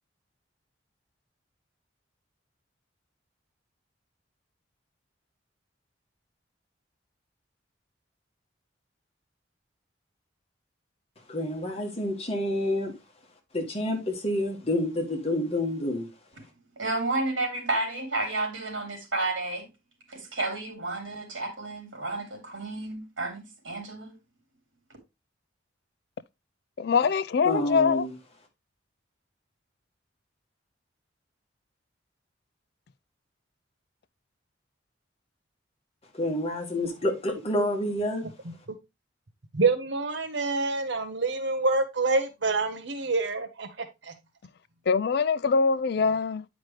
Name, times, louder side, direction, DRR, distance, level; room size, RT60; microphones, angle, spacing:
voice 1, 11.3-12.9 13.5-16.1 27.5-28.1 36.1-38.2, left 1 dB, 30° left, 1.7 m, -28 dB
voice 2, 16.8-19.7 20.1-24.1, right 2 dB, 80° right, 3.2 m, -31 dB
voice 3, 26.8-28.0 44.9-46.4, left 5 dB, 55° left, 0.4 m, -23 dB
voice 4, 39.5-43.7 44.0-44.1, right 3 dB, 65° right, 0.9 m, -26 dB
9.0 x 5.1 x 3.1 m
head